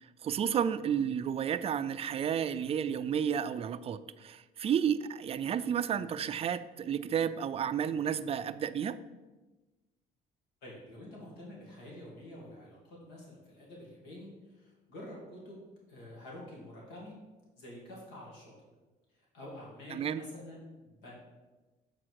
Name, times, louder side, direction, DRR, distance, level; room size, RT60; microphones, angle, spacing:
voice 1, 0.2-9.0 20.0-20.2, right 8 dB, 35° right, 13 dB, 0.3 m, -31 dB
voice 2, 10.6-15.6 15.9-17.2 17.6-18.5 19.1-21.1, left 1 dB, 90° left, -4 dB, 2.1 m, -48 dB
7.5 x 4.3 x 4.7 m, 1.2 s
cardioid pair, 110°, 17 cm